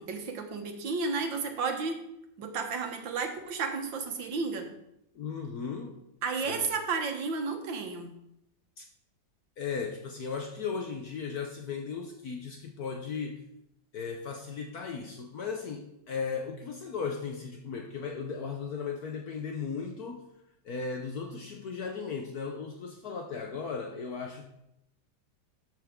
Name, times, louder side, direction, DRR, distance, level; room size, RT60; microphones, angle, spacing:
voice 1, 0.0-2.0 2.4-4.7 6.2-8.1, right 4 dB, 85° right, 4 dB, 2.0 m, -32 dB
voice 2, 5.1-6.0 6.5-6.7 8.8-8.9 9.6-13.4 13.9-20.2 20.6-24.4, left 5 dB, 60° left, 3 dB, 1.3 m, -36 dB
12.5 x 8.1 x 3.7 m, 0.81 s
omnidirectional pair, 2.0 m